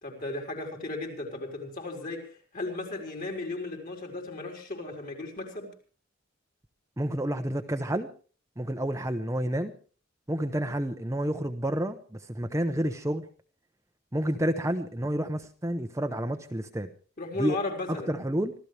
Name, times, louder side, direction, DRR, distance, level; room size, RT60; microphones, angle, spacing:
voice 1, 0.0-5.7 17.2-18.1, left 2 dB, 45° left, 2 dB, 4.7 m, -35 dB
voice 2, 7.0-8.1 8.6-9.7 10.3-13.3 14.1-16.9 17.4-17.6 18.1-18.5, right 1 dB, 15° right, 6 dB, 0.9 m, -29 dB
25.5 x 15.0 x 3.4 m, 0.39 s
head